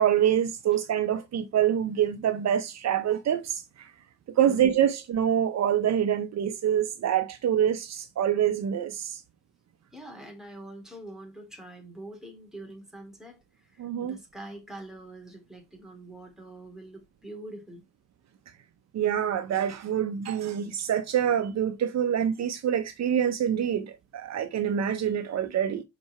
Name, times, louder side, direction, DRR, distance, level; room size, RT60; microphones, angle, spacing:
voice 1, 0.0-3.9 4.4-9.2 13.8-14.2 18.9-25.8, right 9 dB, 60° right, 0.9 m, -26 dB
voice 2, 4.4-4.8 9.9-17.8, right 1 dB, ahead, 3.4 m, -44 dB
5.9 x 5.2 x 4.2 m
cardioid pair, 90°, 30 cm